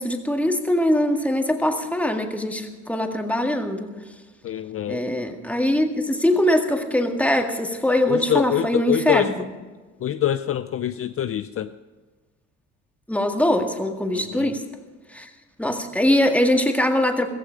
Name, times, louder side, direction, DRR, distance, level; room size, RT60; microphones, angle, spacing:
voice 1, 0.0-3.9 4.9-9.3 13.1-14.7 15.1-15.3 15.6-17.3, left 1 dB, 5° left, 4 dB, 1.9 m, -22 dB
voice 2, 4.4-5.1 8.1-9.3 10.0-11.7 14.1-14.6, left 11 dB, 50° left, 12 dB, 0.5 m, -25 dB
15.5 x 15.0 x 5.1 m, 1.3 s
cardioid pair, 90°, 30 cm